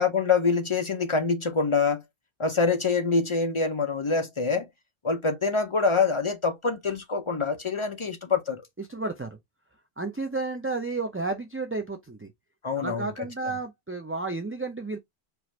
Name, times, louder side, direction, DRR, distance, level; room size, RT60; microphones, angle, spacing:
voice 1, 0.0-2.0 2.4-4.7 5.0-8.6 12.6-13.2, left 4 dB, 40° left, 0.4 m, -25 dB
voice 2, 8.9-9.4 10.0-12.3 12.8-15.0, right 3 dB, 20° right, 0.3 m, -32 dB
4.6 x 2.5 x 3.1 m
omnidirectional pair, 1.1 m